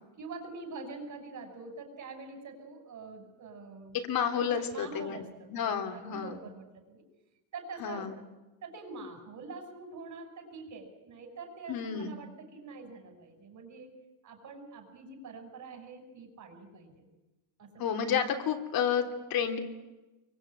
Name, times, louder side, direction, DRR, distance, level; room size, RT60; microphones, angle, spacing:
voice 1, 0.2-4.0 4.3-7.0 7.5-8.2 8.6-13.9 14.2-17.1 17.6-17.8, right 3 dB, 35° right, 6 dB, 6.4 m, -45 dB
voice 2, 3.9-5.2 5.5-6.4 7.8-8.2 11.7-12.1 17.8-19.6, left 8 dB, 45° left, 5 dB, 3.3 m, -30 dB
27.5 x 24.0 x 9.0 m, 1.1 s
cardioid pair, 150°, 48 cm